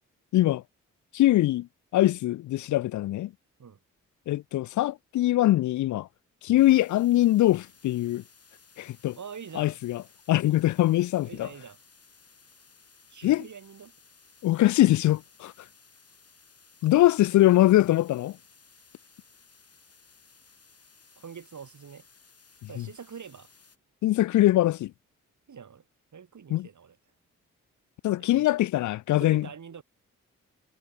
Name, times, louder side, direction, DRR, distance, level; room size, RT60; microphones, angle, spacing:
voice 1, 0.3-0.6 1.1-1.7 1.9-3.3 4.3-6.1 6.4-8.2 8.8-9.2 9.6-10.0 10.3-11.5 13.2-13.4 14.4-15.5 16.8-18.4 22.8-22.9 24.0-24.9 26.5-26.7 28.0-29.5, left 15 dB, 60° left, 0.4 m, -22 dB
sound 1, 6.6-23.8, left 4 dB, 45° left, 7.0 m, -58 dB
voice 2, 9.2-9.8 11.2-11.8 13.1-13.9 21.2-22.1 22.7-23.5 25.5-25.8 26.1-27.0 28.2-28.5 29.1-29.8, right 7 dB, 60° right, 4.9 m, -44 dB
supercardioid pair, 40°, 33 cm